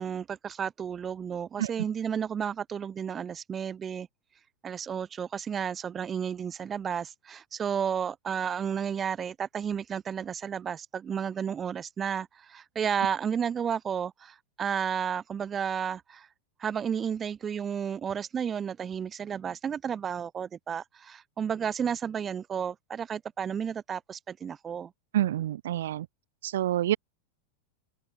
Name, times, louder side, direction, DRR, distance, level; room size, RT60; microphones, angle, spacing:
voice 1, 0.0-4.1 4.6-16.3 16.6-24.9, right 7 dB, 20° right, 4.2 m, -32 dB
voice 2, 25.1-26.1 26.4-27.0, right 12 dB, 60° right, 2.3 m, -27 dB
open air
figure-of-eight pair, 90°, 0 cm